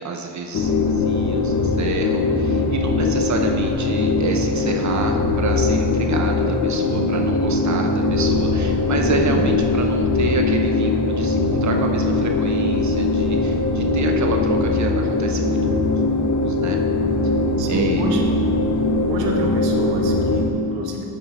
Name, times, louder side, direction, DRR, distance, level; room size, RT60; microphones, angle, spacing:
voice 1, 0.0-16.8 17.2-17.3 17.7-18.0, right 4 dB, 45° right, 3 dB, 0.6 m, -29 dB
sound 1, 0.5-20.5, left 3 dB, 45° left, 0.6 m, -20 dB
voice 2, 9.2-9.5 17.6-18.2 19.1-21.1, right 2 dB, 90° right, 0 dB, 1.0 m, -27 dB
8.2 x 5.4 x 3.6 m, 2.6 s
cardioid pair, 115°, 43 cm